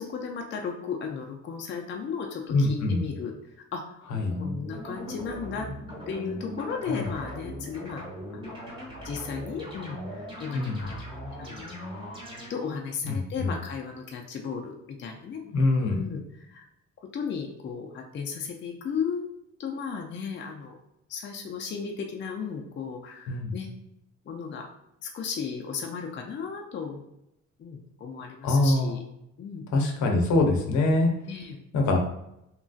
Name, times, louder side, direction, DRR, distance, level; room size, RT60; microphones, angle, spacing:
voice 1, 0.0-3.3 3.7-4.1 4.4-5.7 6.1-8.0 8.3-8.6 9.0-11.0 11.4-11.7 12.5-15.4 15.9-16.6 17.1-19.3 19.6-20.8 21.1-23.7 24.3-24.7 25.0-27.0 27.6-29.0 29.4-29.6 31.2-31.6, left 6 dB, 40° left, 2 dB, 0.4 m, -35 dB
voice 2, 2.5-3.0 4.1-4.3 6.9-7.1 10.5-10.8 13.0-13.5 15.5-16.0 23.3-23.5 28.4-28.9 29.7-31.1 31.7-32.0, left 2 dB, 70° left, 2 dB, 0.7 m, -24 dB
sound 1, 4.3-12.5, equal, 15° right, 1.1 m, -39 dB
2.9 x 2.5 x 2.4 m, 0.83 s
cardioid pair, 90°, 30 cm